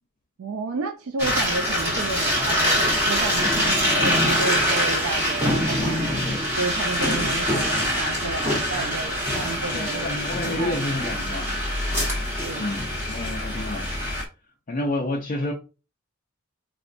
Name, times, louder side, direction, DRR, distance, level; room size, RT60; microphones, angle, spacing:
voice 1, 0.4-6.1 6.6-10.1 10.4-11.4 12.4-12.7, right 3 dB, 75° right, 0.4 m, -31 dB
sound 1, 1.2-14.2, equal, 10° right, 1.1 m, -24 dB
voice 2, 3.6-4.0 6.2-6.4 9.7-11.6 12.6-13.9 14.7-15.5, left 2 dB, 35° left, 0.4 m, -30 dB
sound 2, 9.1-14.3, left 4 dB, 85° left, 0.7 m, -40 dB
4.2 x 2.2 x 2.5 m
head